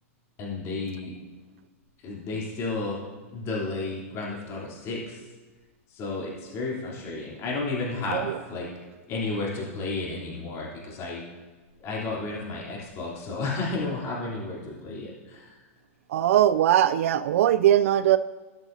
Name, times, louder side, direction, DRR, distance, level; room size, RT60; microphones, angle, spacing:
voice 1, 0.4-1.1 2.0-3.0 3.3-5.2 5.9-8.7 9.1-11.2 11.8-15.7, left 3 dB, 35° left, -4 dB, 3.2 m, -32 dB
voice 2, 16.1-18.2, right 11 dB, 70° right, 13 dB, 0.4 m, -20 dB
16.5 x 6.2 x 2.7 m, 1.3 s
hypercardioid pair, 130°, 8 cm